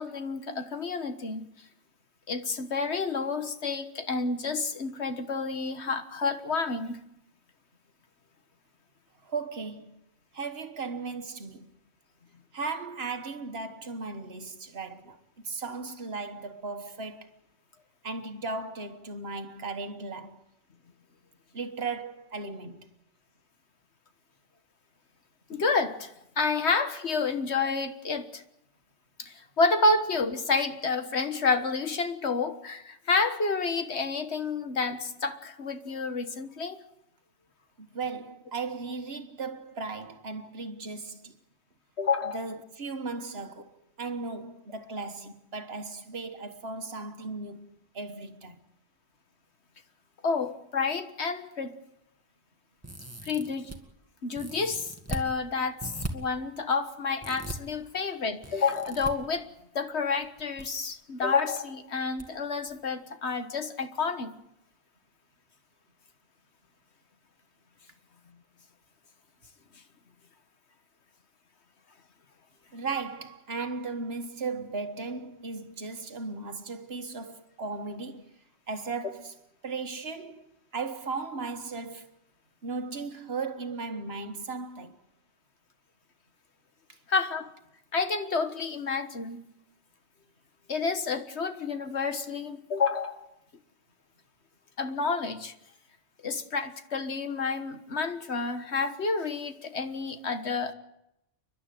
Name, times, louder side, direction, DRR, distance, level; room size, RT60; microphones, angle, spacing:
voice 1, 0.0-1.5 2.3-7.0 25.5-26.1 26.4-28.4 29.2-36.8 42.0-42.4 50.2-51.8 53.2-53.7 54.2-59.5 59.8-64.3 87.1-87.5 87.9-89.4 90.7-93.3 94.8-95.5 96.2-100.7, left 4 dB, 65° left, 1.7 m, -29 dB
voice 2, 9.2-10.0 10.3-11.8 12.5-15.2 15.4-17.3 18.0-20.4 21.5-22.9 37.8-41.4 42.3-47.7 47.9-48.6 72.7-78.4 78.7-79.3 79.6-82.1 82.6-85.0 86.9-87.0, right 4 dB, 60° right, 1.7 m, -36 dB
sound 1, 52.8-53.8 54.3-55.3 55.8-56.1 57.2-57.6 58.4-59.1 60.2-60.6 60.9-61.0 62.2-62.3 62.7-62.8, right 2 dB, 10° right, 1.9 m, -38 dB
30.0 x 11.5 x 9.3 m
omnidirectional pair, 1.2 m